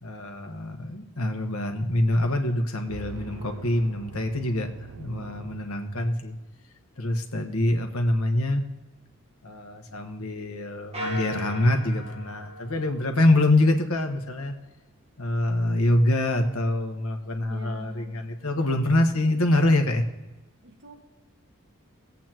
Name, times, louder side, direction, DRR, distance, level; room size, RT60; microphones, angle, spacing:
voice 1, 0.0-6.4 7.0-8.6 9.4-14.5 15.2-20.0, left 1 dB, 90° left, 4 dB, 1.4 m, -25 dB
sound 1, 2.9-6.3, right 5 dB, 80° right, 0.4 m, -43 dB
sound 2, 10.9-13.6, equal, 30° right, 1.5 m, -38 dB
voice 2, 17.5-18.2 20.6-20.9, equal, 55° right, 1 dB, 1.8 m, -44 dB
22.5 x 8.3 x 3.0 m, 1.1 s
head